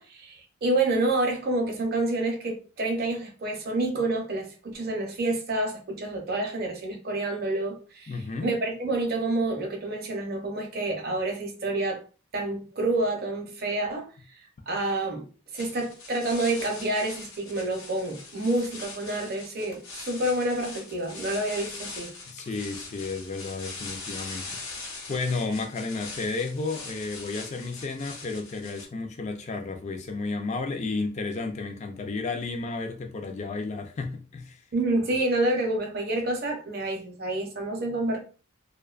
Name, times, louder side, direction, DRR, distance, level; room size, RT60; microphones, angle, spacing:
voice 1, 0.0-8.1 8.4-12.0 12.3-15.3 15.5-22.1 34.7-38.2, right 2 dB, 45° right, 0.6 m, -28 dB
voice 2, 8.1-8.5 22.3-34.6, left 3 dB, 35° left, 0.3 m, -32 dB
sound 1, 15.6-28.9, left 3 dB, 70° left, 0.8 m, -41 dB
2.5 x 2.2 x 2.3 m
head